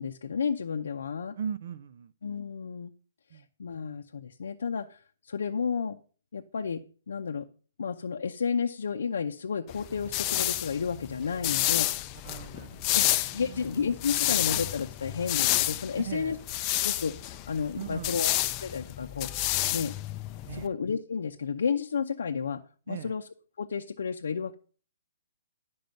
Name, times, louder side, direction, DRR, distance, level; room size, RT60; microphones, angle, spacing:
voice 1, 0.0-1.4 2.2-2.9 3.3-6.0 6.3-7.5 7.8-11.9 12.9-13.0 13.3-16.4 16.8-18.3 18.6-19.3 19.7-19.9 20.5-22.6 22.9-23.3 23.6-24.5, left 6 dB, 75° left, 0.6 m, -32 dB
voice 2, 1.4-2.1 3.3-3.4 12.2-13.8 15.9-16.4 17.7-18.3 20.5-20.7 22.9-23.1, right 8 dB, 55° right, 0.4 m, -39 dB
sound 1, 9.7-20.7, left 15 dB, 30° left, 0.4 m, -30 dB
10.5 x 5.4 x 5.2 m
hypercardioid pair, 150°, 0 cm